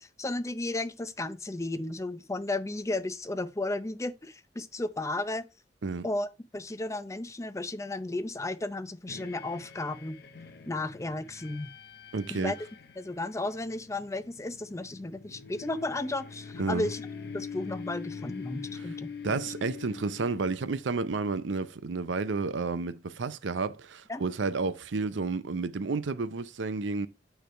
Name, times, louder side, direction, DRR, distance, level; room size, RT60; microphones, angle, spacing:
voice 1, 0.0-5.4 6.0-6.3 6.5-10.2 10.7-11.7 12.3-12.5 13.0-17.0 17.3-19.4 24.1-24.2, left 2 dB, 15° left, 0.5 m, -34 dB
sound 1, 9.1-21.1, left 6 dB, 60° left, 0.7 m, -44 dB
voice 2, 12.1-12.5 16.6-16.9 18.7-18.8 19.2-27.1, right 4 dB, 85° right, 0.6 m, -31 dB
9.2 x 3.4 x 4.4 m
head